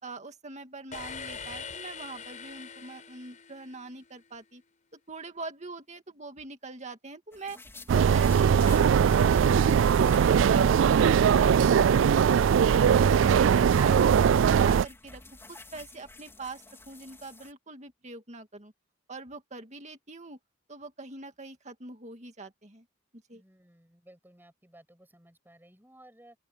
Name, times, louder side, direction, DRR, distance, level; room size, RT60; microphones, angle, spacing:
voice 1, 0.0-4.6 4.9-7.6 7.9-11.0 11.4-12.4 12.9-15.2 15.5-18.7 19.1-20.4 20.7-22.8 23.3-23.4, right 3 dB, 35° right, 2.3 m, -43 dB
sound 1, 0.9-4.1, left 5 dB, 40° left, 5.3 m, -43 dB
sound 2, 7.3-11.8 12.1-12.2 13.1-17.5, left 3 dB, 15° left, 4.4 m, -51 dB
sound 3, 7.9-14.8, right 7 dB, 75° right, 0.3 m, -21 dB
voice 2, 23.3-26.4, right 1 dB, 10° right, 7.8 m, -57 dB
open air
head